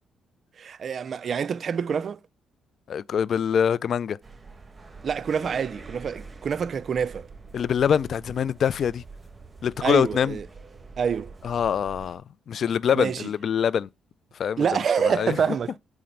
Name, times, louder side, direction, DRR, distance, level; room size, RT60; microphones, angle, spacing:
voice 1, 0.6-2.2 5.0-7.3 9.8-10.5 11.0-11.3 12.9-13.3 14.6-15.8, right 7 dB, 50° right, 0.4 m, -26 dB
voice 2, 2.9-4.2 7.5-9.0 9.6-10.4 11.4-12.2 12.5-13.9 14.4-14.6 15.0-15.4, left 8 dB, 60° left, 0.3 m, -24 dB
sound 1, 4.2-12.2, right 3 dB, 25° right, 1.6 m, -45 dB
4.7 x 4.4 x 5.3 m
cardioid pair, 90°, 0 cm